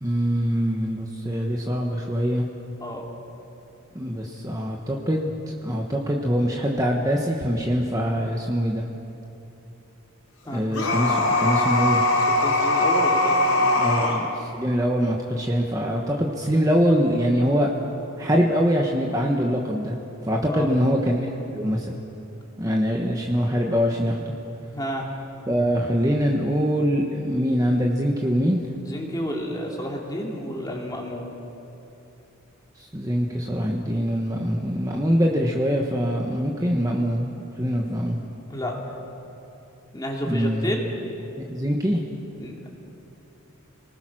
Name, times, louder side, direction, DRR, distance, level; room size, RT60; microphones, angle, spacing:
voice 1, 0.0-2.5 3.9-8.8 10.5-12.0 13.8-17.7 18.2-20.0 20.2-21.9 22.6-24.3 25.5-28.6 32.8-38.2 40.2-40.7 41.5-42.0, equal, 15° right, 0 dB, 1.3 m, -23 dB
sound 1, 10.7-14.2, left 2 dB, 80° left, 4.4 m, -21 dB
voice 2, 12.2-13.8 20.4-20.7 24.7-25.0 28.8-31.3 38.5-38.7 39.9-40.9 42.4-42.7, equal, 15° left, -1 dB, 3.0 m, -31 dB
29.5 x 19.5 x 6.3 m, 2.9 s
head